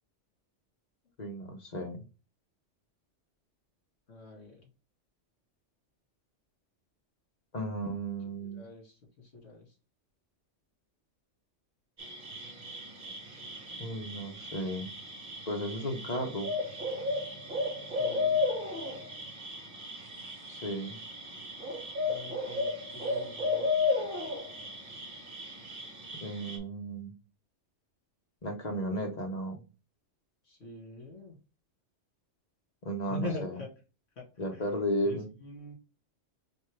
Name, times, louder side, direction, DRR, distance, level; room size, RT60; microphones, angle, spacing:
voice 1, 1.2-2.0 7.5-8.7 13.8-14.9 15.5-16.5 20.5-21.0 26.2-27.2 28.4-29.6 32.8-33.6 34.4-35.3, equal, 40° left, 3 dB, 1.0 m, -34 dB
voice 2, 4.1-4.7 8.4-9.7 17.8-18.5 22.0-23.9 30.4-31.4 33.1-33.7 34.2-34.7 35.0-35.8, left 3 dB, 60° left, -1 dB, 2.2 m, -44 dB
sound 1, 12.0-26.6, left 3 dB, 45° right, 1.3 m, -34 dB
4.1 x 3.6 x 3.3 m, 0.32 s
omnidirectional pair, 1.2 m